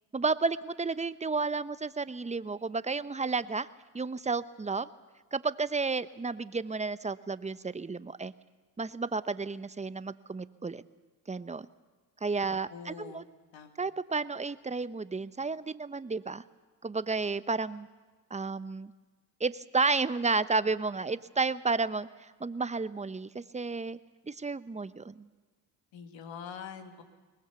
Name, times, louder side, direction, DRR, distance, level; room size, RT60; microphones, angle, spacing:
voice 1, 0.1-3.7 3.9-4.9 5.3-8.3 8.8-10.8 11.3-11.7 12.2-13.2 13.8-16.4 16.8-17.9 18.3-18.9 19.4-22.1 22.4-24.0 24.3-25.3, right 4 dB, 15° right, 15 dB, 0.8 m, -32 dB
voice 2, 12.5-13.2 13.5-13.7 25.9-27.0, left 7 dB, 75° left, 6 dB, 2.2 m, -44 dB
22.5 x 19.5 x 7.0 m, 1.3 s
supercardioid pair, 50°, 46 cm